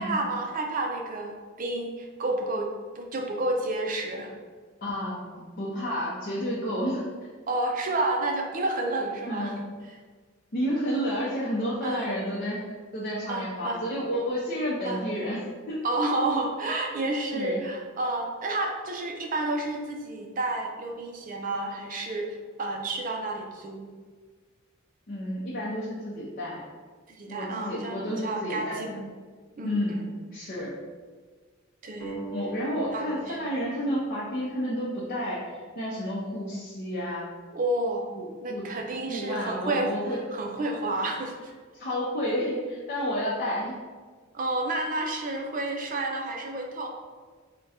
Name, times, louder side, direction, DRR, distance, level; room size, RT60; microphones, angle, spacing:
voice 1, 0.0-2.7 2.9-4.3 7.5-9.5 9.8-10.0 11.8-12.1 13.3-13.8 14.8-15.1 15.8-22.3 22.6-23.9 27.1-29.0 29.6-30.0 31.8-32.2 32.9-33.4 37.5-38.1 38.4-41.3 44.3-46.9, right 2 dB, 40° right, 2 dB, 0.5 m, -30 dB
voice 2, 4.8-7.3 9.3-9.6 10.5-15.4 15.7-15.8 17.3-17.6 25.1-26.7 27.3-28.9 29.6-30.0 30.3-30.7 32.3-37.2 38.2-38.3 38.5-38.7 39.1-40.2 41.7-43.8, equal, 45° left, -6 dB, 0.6 m, -30 dB
sound 1, 32.0-35.2, right 3 dB, 20° left, 1.0 m, -42 dB
3.6 x 2.2 x 4.1 m, 1.5 s
head